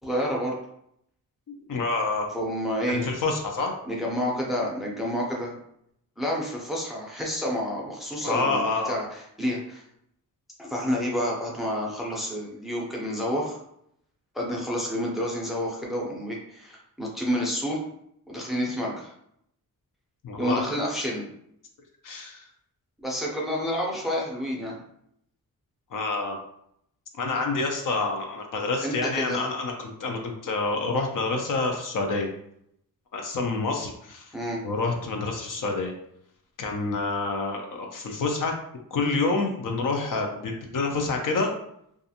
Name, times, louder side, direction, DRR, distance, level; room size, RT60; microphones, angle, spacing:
voice 1, 0.0-0.6 2.3-3.0 3.9-5.5 6.2-9.8 10.6-13.6 14.3-17.8 18.3-19.1 20.4-21.3 23.0-24.8 28.8-29.4 34.3-34.6, equal, ahead, -3 dB, 0.5 m, -29 dB
voice 2, 1.7-2.3 2.9-3.7 8.2-9.0 20.2-20.6 22.0-22.4 25.9-26.4 27.2-32.3 33.1-34.3 34.6-35.9 36.6-38.5 38.9-41.5, left 3 dB, 60° left, 2 dB, 0.5 m, -27 dB
2.4 x 2.4 x 2.7 m, 0.73 s
wide cardioid pair, 150°, 36 cm